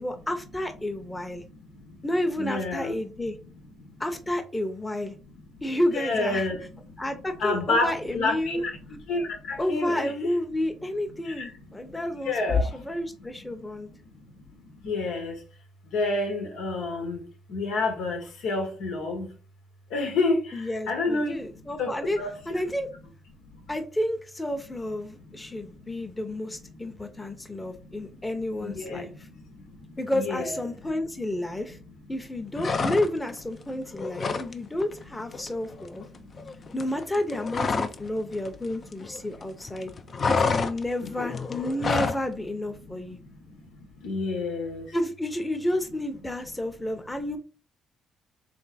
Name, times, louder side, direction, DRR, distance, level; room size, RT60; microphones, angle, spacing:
voice 1, 0.0-1.4 2.0-3.4 4.0-5.1 5.6-6.5 7.0-8.6 9.6-13.9 20.5-22.2 22.5-22.9 23.7-29.1 30.0-31.8 32.1-36.0 36.7-39.9 40.3-43.2 44.9-47.4, left 1 dB, 15° left, 0.8 m, -30 dB
voice 2, 2.4-2.9 5.9-6.6 7.4-8.7 9.1-10.1 11.4-11.5 12.3-12.7 14.8-15.3 15.9-17.2 17.5-19.3 19.9-20.4 20.9-21.3 21.8-21.9 22.2-22.3 28.6-29.0 30.1-30.6 41.0-41.3 44.0-44.8, left 3 dB, 90° left, 1.3 m, -28 dB
sound 1, 32.5-33.4 33.7-34.5 34.8-35.0 35.3-38.1 38.3-39.4 39.7-42.2, left 4 dB, 45° left, 0.5 m, -28 dB
3.4 x 3.2 x 4.2 m
cardioid pair, 90°, 0 cm